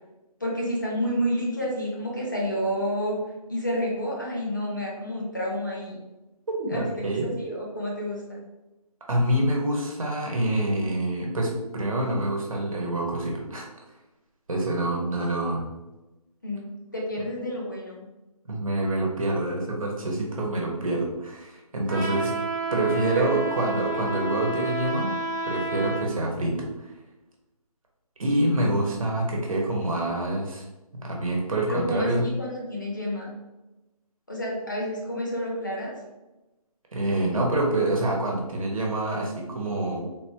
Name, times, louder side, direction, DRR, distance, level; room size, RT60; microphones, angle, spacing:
voice 1, 0.4-3.2 3.5-6.0 6.7-6.8 7.2-8.4 16.4-16.7 16.9-18.0 22.0-22.1 22.9-23.3 23.9-24.3 31.7-33.3 34.3-35.9, equal, 30° left, -3 dB, 0.6 m, -30 dB
voice 2, 6.5-7.3 9.1-13.7 14.5-15.6 18.5-22.3 22.7-25.2 25.4-26.9 28.2-30.6 30.9-32.3 36.9-40.0, right 1 dB, 60° right, -1 dB, 1.0 m, -26 dB
Trumpet, 21.9-26.1, right 2 dB, 30° right, 0.7 m, -30 dB
3.8 x 2.3 x 2.7 m, 1.0 s
hypercardioid pair, 180°, 19 cm